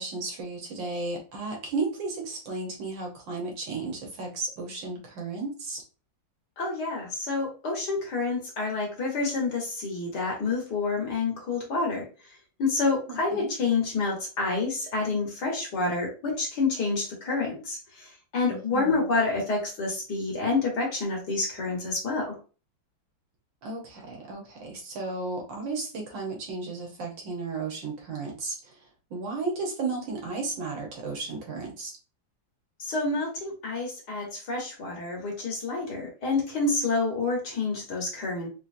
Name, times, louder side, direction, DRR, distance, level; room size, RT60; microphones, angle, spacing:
voice 1, 0.0-5.8 13.1-13.5 18.5-19.1 23.6-28.6 29.1-31.9, right 3 dB, 70° right, 0 dB, 1.8 m, -34 dB
voice 2, 6.6-22.4 32.8-38.5, left 3 dB, 60° left, -1 dB, 1.8 m, -28 dB
4.1 x 2.8 x 2.6 m, 0.34 s
omnidirectional pair, 2.1 m